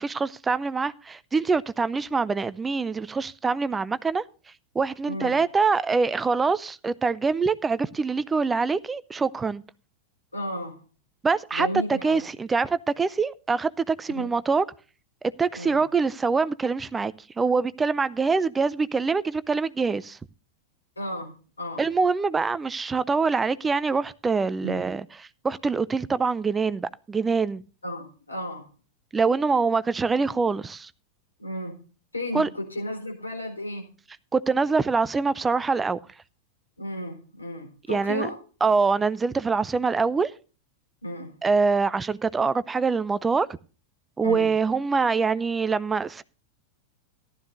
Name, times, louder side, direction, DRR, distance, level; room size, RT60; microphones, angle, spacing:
voice 1, 0.0-4.2 4.7-9.6 11.2-14.7 15.2-20.2 21.8-27.6 29.1-30.9 32.3-32.5 34.3-36.0 37.9-38.3 38.6-40.3 41.4-43.5 44.2-46.2, right 4 dB, 15° right, 0.5 m, -24 dB
voice 2, 5.1-5.4 10.3-10.8 11.5-12.2 14.1-14.3 15.5-15.8 21.0-21.8 24.6-24.8 27.8-28.7 31.4-31.8 32.1-33.9 36.8-38.4 41.0-41.3 44.2-44.5, equal, 80° left, 3.8 m, -33 dB
14.5 x 12.5 x 2.6 m
figure-of-eight pair, 90°, 0 cm